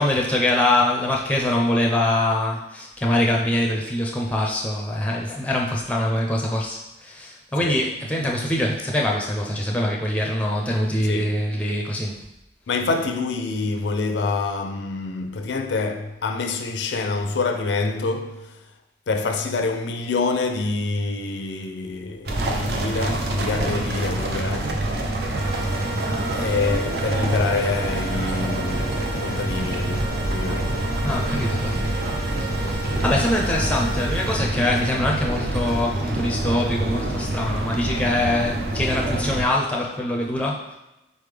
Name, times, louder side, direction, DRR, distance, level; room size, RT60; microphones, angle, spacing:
voice 1, 0.0-12.2 31.0-31.8 32.4-40.8, left 1 dB, 10° left, 0.5 m, -24 dB
voice 2, 11.0-11.4 12.7-18.6 19.1-24.9 26.3-30.8, left 3 dB, 85° left, 0.4 m, -26 dB
sound 1, 22.3-39.4, right 1 dB, 60° right, 0.5 m, -26 dB
sound 2, 25.3-34.3, equal, 85° right, 1.2 m, -35 dB
4.1 x 3.5 x 3.3 m
head